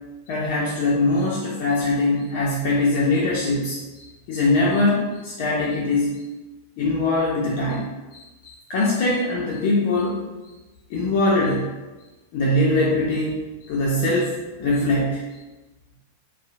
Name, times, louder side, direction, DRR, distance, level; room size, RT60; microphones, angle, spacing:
voice 1, 0.3-6.1 6.8-10.2 10.9-11.7 12.3-14.3 14.6-15.2, left 2 dB, 50° left, -5 dB, 0.5 m, -22 dB
2.7 x 2.0 x 2.6 m, 1.2 s
hypercardioid pair, 95°, 0 cm